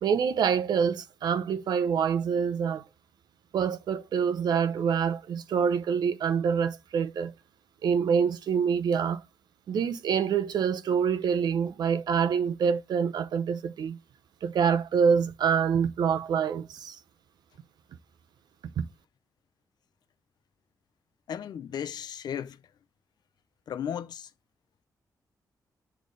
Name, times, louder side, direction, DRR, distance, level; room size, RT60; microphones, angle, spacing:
voice 1, 0.0-2.8 3.5-7.3 7.8-9.2 9.7-14.0 14.4-17.0 18.8-18.9, right 7 dB, 75° right, 0.7 m, -26 dB
voice 2, 21.3-22.6 23.7-24.3, left 9 dB, 75° left, 0.6 m, -35 dB
8.4 x 3.4 x 3.8 m
wide cardioid pair, 155°, 7 cm